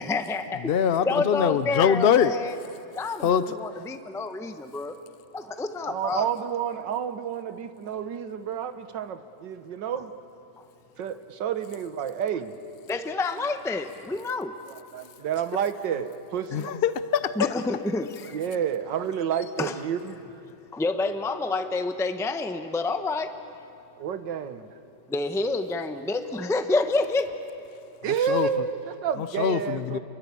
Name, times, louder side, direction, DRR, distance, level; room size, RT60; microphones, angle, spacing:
voice 1, 0.0-0.6 1.0-2.6 2.9-3.3 3.6-4.9 5.3-6.3 12.9-14.5 17.4-18.4 19.6-19.7 20.7-23.3 25.1-27.3, left 3 dB, ahead, 8 dB, 0.7 m, -28 dB
voice 2, 0.6-2.3 3.2-3.6 16.5-17.4 28.3-28.5 29.2-30.0, left 8 dB, 60° left, 13 dB, 0.6 m, -23 dB
voice 3, 5.4-10.1 11.0-12.5 14.7-16.8 18.3-20.2 24.0-24.7 28.0-30.0, right 8 dB, 85° right, 10 dB, 1.8 m, -30 dB
29.0 x 23.0 x 8.5 m, 2.8 s
omnidirectional pair, 1.9 m